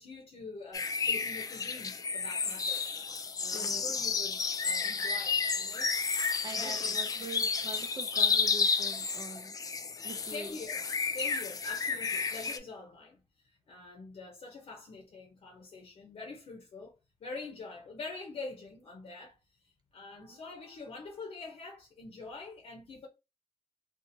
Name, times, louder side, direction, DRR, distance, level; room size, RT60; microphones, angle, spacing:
voice 1, 0.0-2.9 3.4-5.9 6.5-7.0 10.3-13.2 13.7-16.9 17.2-19.4 19.9-23.1, left 3 dB, 65° left, 0.7 m, -45 dB
sound 1, 0.7-12.6, left 5 dB, 35° left, 0.3 m, -31 dB
voice 2, 3.5-3.9 6.4-9.6 10.0-10.6 20.2-20.4, right 2 dB, 40° right, 0.5 m, -44 dB
2.7 x 2.4 x 2.6 m
wide cardioid pair, 140°, 11 cm